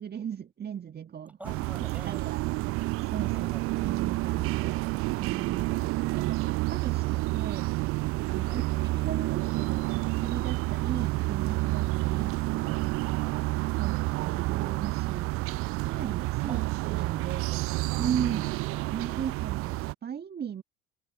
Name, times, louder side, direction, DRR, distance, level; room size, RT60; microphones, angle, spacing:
voice 1, 0.0-1.5 2.0-2.4 2.8-7.7 8.3-9.9 10.2-12.8 13.7-17.5 18.0-18.5 18.9-20.6, right 8 dB, 35° right, 1.6 m, -37 dB
voice 2, 1.4-2.5 3.2-3.9 8.5-8.7 13.1-13.4 16.5-16.7 17.1-17.8 18.3-19.2, right 1 dB, 5° right, 5.5 m, -49 dB
sound 1, 1.4-19.9, right 21 dB, 50° right, 0.5 m, -29 dB
figure-of-eight pair, 55°, 30 cm